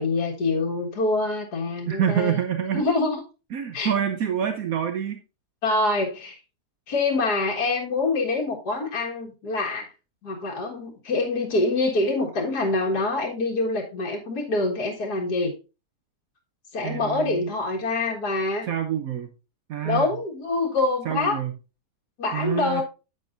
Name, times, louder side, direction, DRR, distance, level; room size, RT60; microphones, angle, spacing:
voice 1, 0.0-2.4 2.7-3.2 3.7-3.9 5.6-6.4 6.9-9.8 10.2-15.5 16.7-18.7 19.8-21.4 22.2-22.8, left 3 dB, 80° left, -2 dB, 2.3 m, -25 dB
voice 2, 1.9-2.8 3.5-5.2 16.8-17.5 18.6-19.3 19.7-20.1 21.0-21.5 22.3-22.8, right 9 dB, 65° right, 6 dB, 1.2 m, -26 dB
10.5 x 7.8 x 2.6 m, 0.30 s
omnidirectional pair, 1.7 m